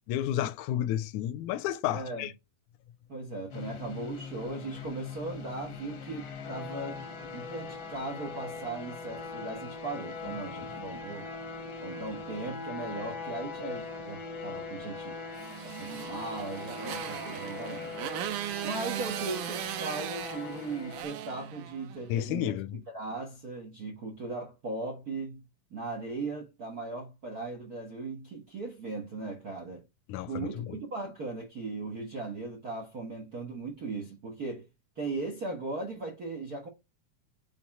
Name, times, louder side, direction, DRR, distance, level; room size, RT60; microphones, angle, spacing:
voice 1, 0.1-2.3 22.1-22.8 30.1-30.8, left 12 dB, 80° left, 2.0 m, -31 dB
voice 2, 1.9-2.3 3.1-7.0 7.3-11.3 11.8-15.2 15.6-17.9 18.6-22.6 22.9-25.4 25.7-29.8 30.3-34.7 35.0-36.7, right 3 dB, 55° right, 1.0 m, -38 dB
sound 1, 3.5-21.0, left 4 dB, 60° left, 1.3 m, -41 dB
Motorcycle, 15.4-22.1, right 12 dB, 80° right, 2.2 m, -38 dB
7.6 x 4.2 x 4.3 m
omnidirectional pair, 3.6 m